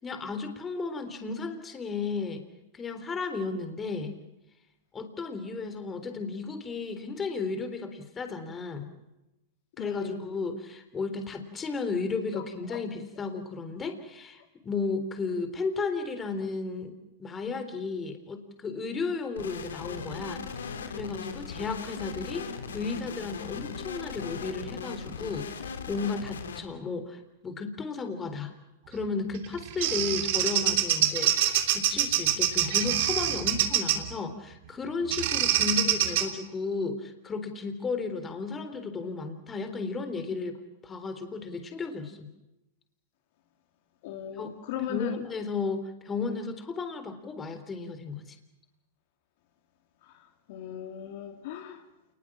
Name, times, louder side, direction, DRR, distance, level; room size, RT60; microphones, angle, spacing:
voice 1, 0.0-2.4 2.7-4.1 4.9-8.9 9.8-16.9 17.2-22.5 22.7-28.5 28.9-31.3 31.7-40.6 40.8-42.3 44.3-44.5 44.9-48.4, left 4 dB, 20° left, 3.7 m, -34 dB
voice 2, 9.8-10.2 12.3-12.4 12.7-12.8 44.0-45.2 50.1-50.2 50.5-51.8, left 9 dB, 60° left, 2.8 m, -37 dB
sound 1, 19.4-26.6, left 6 dB, 85° left, 3.2 m, -38 dB
Bird vocalization bird call bird song, 29.3-34.1 35.1-36.3, right 12 dB, 60° right, 3.2 m, -25 dB
28.5 x 20.5 x 7.4 m
hypercardioid pair, 115°, 0 cm